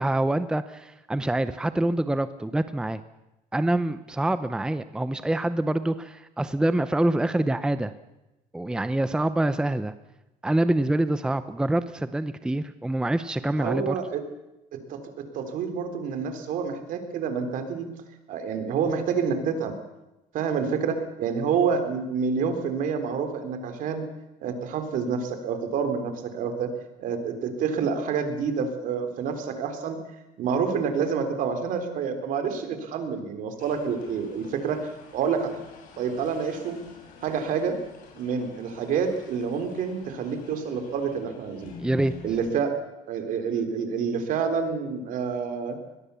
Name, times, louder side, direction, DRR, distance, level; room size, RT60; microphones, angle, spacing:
voice 1, 0.0-3.0 3.5-7.9 8.5-9.9 10.4-14.0 41.8-42.1, right 1 dB, 5° right, 12 dB, 0.7 m, -25 dB
voice 2, 13.4-14.2 14.7-17.9 18.3-19.7 20.3-24.1 24.4-26.7 27.0-30.0 30.4-35.7 36.0-36.8 37.2-37.8 38.1-41.7 42.2-42.8 43.1-45.8, right 6 dB, 60° right, 7 dB, 3.6 m, -28 dB
sound 1, 33.6-42.5, left 5 dB, 65° left, 6.6 m, -48 dB
22.5 x 20.5 x 7.0 m, 0.96 s
cardioid pair, 140°, 15 cm